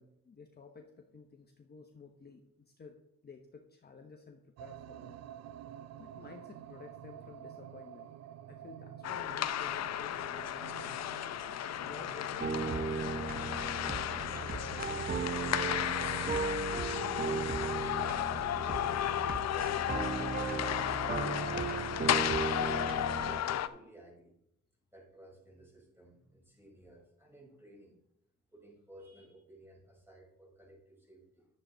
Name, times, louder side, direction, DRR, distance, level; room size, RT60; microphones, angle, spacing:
voice 1, 0.0-3.0 3.2-5.2 6.0-8.1 8.5-11.2 11.8-16.3 19.2-19.3, left 4 dB, 35° left, 3 dB, 1.1 m, -53 dB
sound 1, 4.6-22.2, right 11 dB, 60° right, 0.5 m, -50 dB
sound 2, 9.0-23.7, left 11 dB, 60° left, 0.6 m, -34 dB
sound 3, 12.4-23.4, right 5 dB, 30° right, 0.8 m, -36 dB
voice 2, 18.9-24.4 24.9-28.0 28.5-31.5, right 1 dB, 5° right, -2 dB, 4.4 m, -56 dB
11.0 x 7.7 x 4.0 m, 0.78 s
cardioid pair, 90°, 30 cm